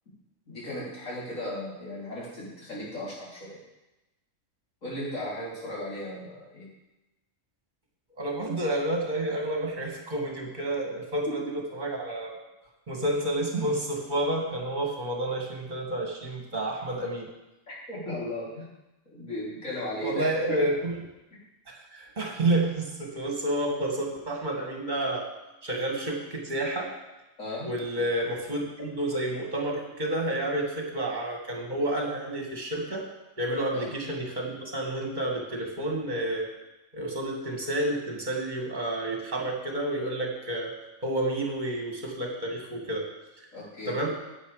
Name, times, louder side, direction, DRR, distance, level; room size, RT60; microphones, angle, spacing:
voice 1, 0.5-3.6 4.8-6.7 11.3-11.5 17.7-18.7 19.1-20.6 27.4-27.7 33.7-33.9 43.5-43.9, left 1 dB, 75° left, -7 dB, 3.9 m, -36 dB
voice 2, 8.2-12.3 12.9-17.3 20.0-21.0 21.7-25.3 25.6-26.9 27.6-33.0 33.4-36.5 36.9-40.7 41.0-43.1 43.9-44.1, right 1 dB, 35° right, 1 dB, 2.0 m, -30 dB
10.0 x 8.6 x 4.9 m, 1.0 s
omnidirectional pair, 1.4 m